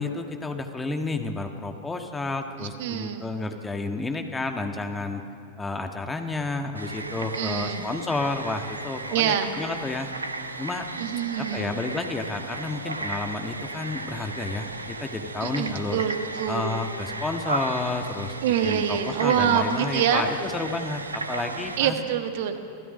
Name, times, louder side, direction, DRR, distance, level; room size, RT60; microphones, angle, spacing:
voice 1, 0.0-5.2 5.6-10.1 10.6-10.9 11.4-16.0 16.5-18.3 18.6-21.9, left 3 dB, 10° left, 5 dB, 1.6 m, -31 dB
voice 2, 2.6-3.3 7.2-7.8 9.1-9.5 11.0-11.7 15.4-16.8 18.4-20.2 21.8-22.6, right 9 dB, 55° right, 7 dB, 1.5 m, -26 dB
sound 1, 6.7-21.8, right 2 dB, 80° right, 1.0 m, -35 dB
26.5 x 15.5 x 6.4 m, 2.5 s
figure-of-eight pair, 90°, 0 cm